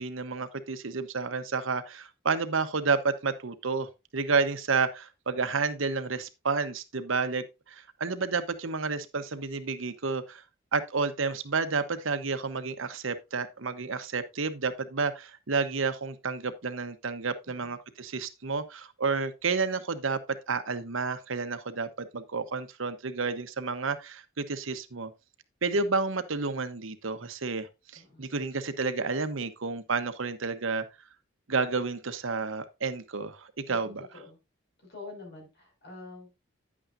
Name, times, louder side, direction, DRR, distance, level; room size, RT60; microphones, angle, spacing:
voice 1, 0.0-10.4 10.7-20.2 20.5-25.1 25.6-30.8 31.5-34.1, right 4 dB, 75° right, 1.0 m, -30 dB
voice 2, 28.0-28.3 33.7-34.4 34.9-36.3, left 3 dB, 55° left, 5.7 m, -46 dB
10.0 x 8.6 x 2.6 m
head